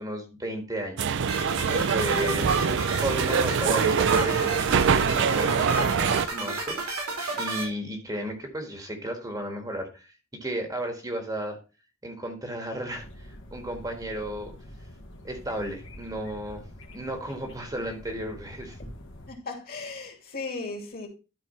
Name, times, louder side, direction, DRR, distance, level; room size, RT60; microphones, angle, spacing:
voice 1, 0.0-2.5 3.0-11.6 12.0-14.5 15.2-16.6 16.9-18.8, right 1 dB, 15° right, 1.5 m, -34 dB
sound 1, 1.0-6.3, right 6 dB, 55° right, 0.5 m, -24 dB
sound 2, 1.3-7.6, right 3 dB, 90° right, 3.8 m, -31 dB
sound 3, 12.9-19.3, left 1 dB, 60° left, 1.8 m, -46 dB
voice 2, 19.3-21.1, left 3 dB, 45° left, 2.5 m, -36 dB
12.0 x 4.8 x 4.2 m
head